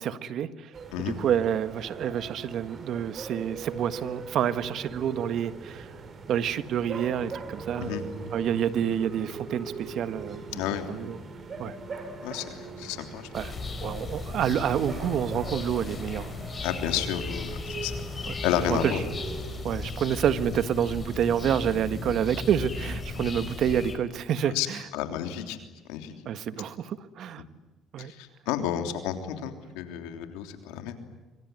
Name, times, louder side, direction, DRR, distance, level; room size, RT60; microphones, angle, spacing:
voice 1, 0.0-0.7 1.0-5.9 6.3-7.9 8.3-10.6 10.9-11.2 11.6-11.7 13.3-13.5 13.8-16.3 18.3-18.4 18.7-19.0 19.6-24.8 26.2-27.4 27.9-28.1, right 9 dB, 65° right, 1.5 m, -28 dB
sound 1, 0.7-19.6, right 4 dB, 40° right, 5.2 m, -41 dB
voice 2, 10.5-10.9 12.2-13.3 16.6-17.9 18.4-19.0 24.5-24.7 24.9-25.6 25.9-26.1 28.0-31.0, left 10 dB, 90° left, 3.2 m, -31 dB
sound 2, 13.3-24.0, left 3 dB, 30° left, 4.7 m, -36 dB
25.0 x 25.0 x 9.6 m
supercardioid pair, 85°, 0 cm